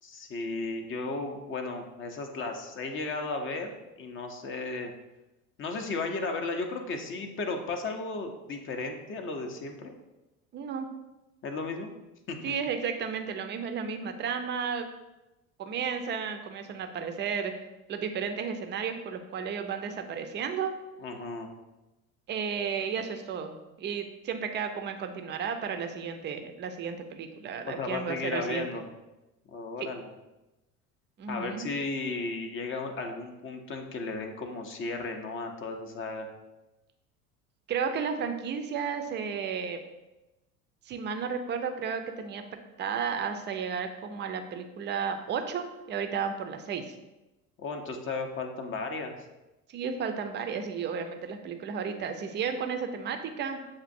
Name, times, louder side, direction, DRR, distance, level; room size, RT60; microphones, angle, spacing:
voice 1, 0.0-4.9 5.6-9.9 11.4-11.9 12.3-12.6 21.0-21.5 27.6-28.8 29.5-30.1 31.3-36.3 47.6-49.1, left 3 dB, 30° left, 4 dB, 0.6 m, -35 dB
voice 2, 10.5-10.9 12.4-14.9 15.6-17.5 17.9-20.7 22.3-28.7 29.8-29.9 31.2-31.7 37.7-39.8 40.9-42.4 42.8-46.9 49.7-53.7, right 6 dB, 25° right, 7 dB, 0.5 m, -33 dB
7.3 x 2.5 x 2.6 m, 1.0 s
hypercardioid pair, 75°, 43 cm